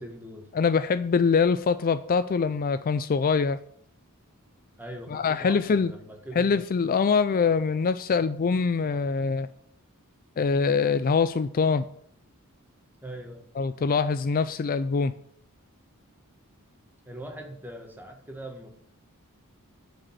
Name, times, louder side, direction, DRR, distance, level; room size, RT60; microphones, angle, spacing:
voice 1, 0.0-0.5 4.8-6.5 13.0-13.4 17.0-18.7, right 1 dB, 10° right, 1.8 m, -41 dB
voice 2, 0.5-3.6 5.1-5.9 6.3-9.5 10.4-11.9 13.6-15.1, left 5 dB, 40° left, 0.4 m, -24 dB
10.5 x 5.1 x 7.4 m
head